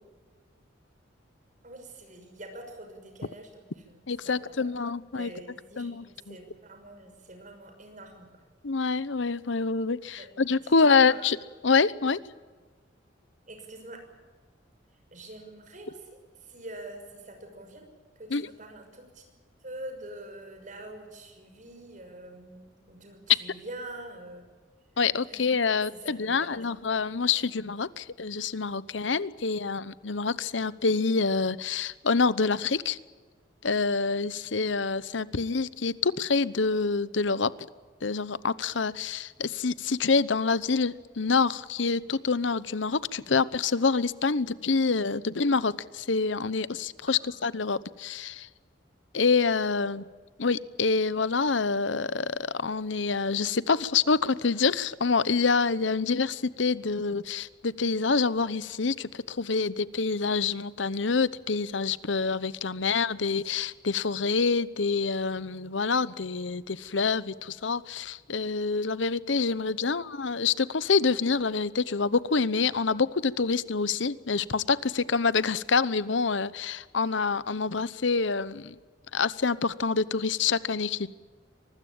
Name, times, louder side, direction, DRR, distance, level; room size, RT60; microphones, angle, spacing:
voice 1, 1.6-4.7 5.1-8.3 10.2-11.3 13.5-14.0 15.1-16.2 16.5-17.9 18.2-19.2 19.6-24.4 25.3-25.4 25.9-26.6 49.7-50.0 69.4-69.5 69.8-69.9, right 1 dB, 45° right, 5 dB, 6.1 m, -45 dB
voice 2, 4.1-5.3 5.8-6.4 8.6-11.4 11.6-12.2 18.3-18.5 25.0-33.0 33.6-37.5 38.0-48.5 49.1-50.1 50.4-78.7 79.1-81.1, left 4 dB, 85° left, 17 dB, 0.9 m, -26 dB
24.0 x 20.0 x 8.7 m, 1.4 s
head